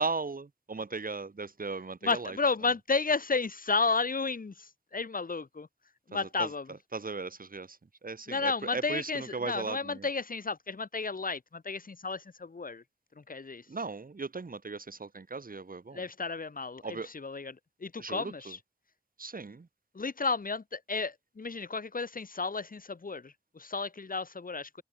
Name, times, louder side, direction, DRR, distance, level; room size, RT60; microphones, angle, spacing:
voice 1, 0.0-2.3 6.1-6.5 6.9-7.8 8.0-10.1 13.7-16.0 16.8-17.1 18.0-18.3 19.2-19.7, right 4 dB, 75° right, 5.3 m, -37 dB
voice 2, 2.0-5.7 6.1-6.7 8.3-12.8 13.2-13.7 15.9-18.6 19.9-24.8, left 4 dB, 75° left, 2.6 m, -32 dB
wide cardioid pair, 65°, 15 cm